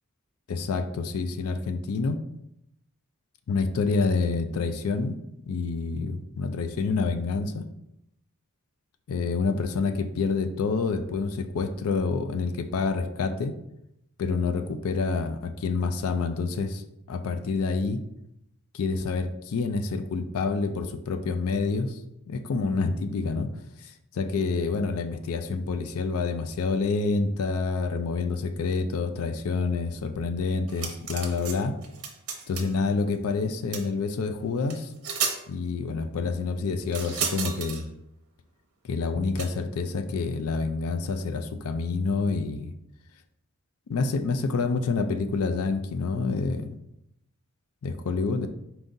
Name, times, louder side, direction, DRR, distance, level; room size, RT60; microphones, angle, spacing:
voice 1, 0.5-2.2 3.5-5.2 5.5-7.7 9.1-13.5 14.2-16.8 17.1-18.0 18.7-22.0 22.3-23.5 23.8-31.7 32.5-34.9 35.5-37.8 38.9-42.7 43.9-46.8 47.8-48.5, left 4 dB, 70° left, 9 dB, 0.4 m, -28 dB
sound 1, 30.7-31.5 31.8-32.7 33.7-33.8 34.7-34.8 35.0-35.4 36.9-37.8 39.4-39.5, right 6 dB, 70° right, 0.8 m, -32 dB
4.6 x 3.7 x 2.6 m, 0.81 s
head